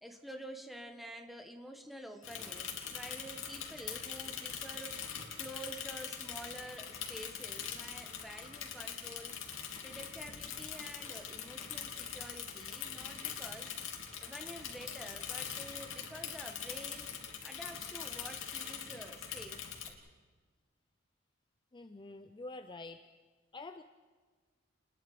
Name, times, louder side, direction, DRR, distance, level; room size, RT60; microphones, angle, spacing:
voice 1, 0.0-9.3 9.8-13.7 14.2-17.1 17.4-19.6, right 1 dB, ahead, 4 dB, 1.6 m, -49 dB
Bicycle / Mechanisms, 2.2-19.9, left 8 dB, 80° left, 2.7 m, -43 dB
voice 2, 21.7-23.0 23.5-23.8, left 2 dB, 25° left, 9 dB, 0.6 m, -46 dB
30.0 x 20.5 x 5.1 m, 1.5 s
head